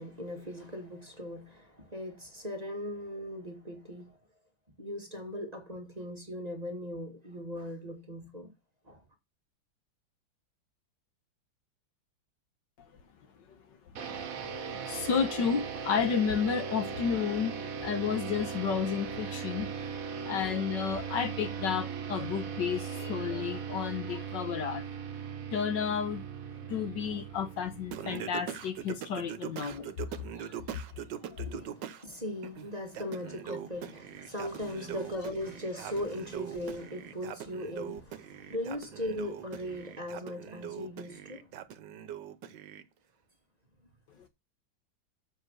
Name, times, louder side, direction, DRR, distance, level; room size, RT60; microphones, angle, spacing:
voice 1, 0.0-4.2 4.8-8.5 8.9-9.0 31.3-41.5, left 1 dB, 20° right, 1.8 m, -39 dB
sound 1, 14.0-28.8, right 6 dB, 50° right, 1.3 m, -38 dB
voice 2, 14.8-19.7 20.2-24.8 25.5-26.2 26.7-30.6 31.3-31.5, left 7 dB, 65° left, 1.5 m, -32 dB
Singing, 27.9-32.0 32.4-42.8, right 9 dB, 65° right, 1.4 m, -42 dB
7.5 x 5.9 x 6.3 m
omnidirectional pair, 2.2 m